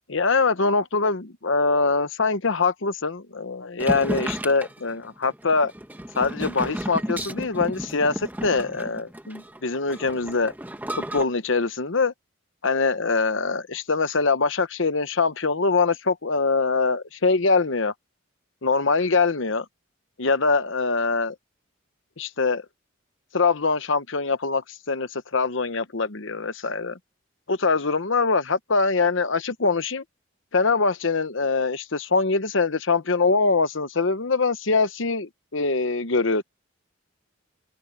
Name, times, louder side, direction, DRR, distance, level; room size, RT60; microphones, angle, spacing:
voice 1, 0.1-5.7 6.2-10.5 11.0-12.1 12.6-17.9 18.6-19.7 20.2-21.3 22.2-22.7 23.3-27.0 27.5-30.0 30.5-36.4, left 4 dB, 65° left, 1.0 m, -23 dB
sound 1, 3.8-11.2, right 1 dB, 10° right, 1.4 m, -33 dB
open air
head